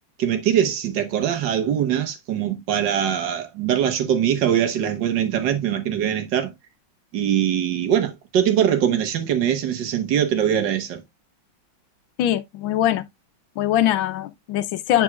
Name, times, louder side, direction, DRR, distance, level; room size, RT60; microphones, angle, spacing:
voice 1, 0.2-6.5 7.1-11.0, right 9 dB, 60° right, 1.8 m, -22 dB
voice 2, 12.2-13.0 13.6-15.0, left 12 dB, 75° left, 1.4 m, -22 dB
7.6 x 6.2 x 2.3 m
omnidirectional pair, 2.2 m